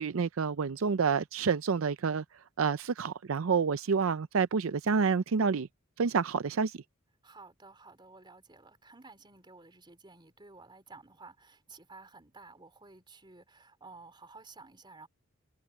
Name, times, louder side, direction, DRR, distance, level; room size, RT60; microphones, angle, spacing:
voice 1, 0.0-2.2 2.6-5.7 6.0-6.8, right 5 dB, 75° right, 0.5 m, -28 dB
voice 2, 7.2-15.1, right 3 dB, 25° right, 3.5 m, -53 dB
head